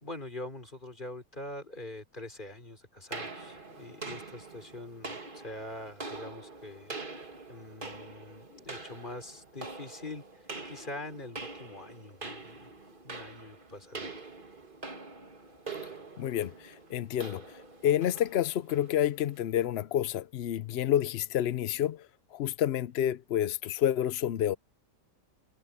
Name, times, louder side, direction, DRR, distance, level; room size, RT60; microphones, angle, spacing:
voice 1, 0.0-6.9 7.5-12.7 13.0-14.1, left 1 dB, 25° left, 4.0 m, -44 dB
sound 1, 3.1-19.5, right 3 dB, 30° right, 2.3 m, -44 dB
voice 2, 16.2-17.4 17.8-22.1 22.3-24.6, left 11 dB, 85° left, 0.5 m, -29 dB
omnidirectional pair, 1.8 m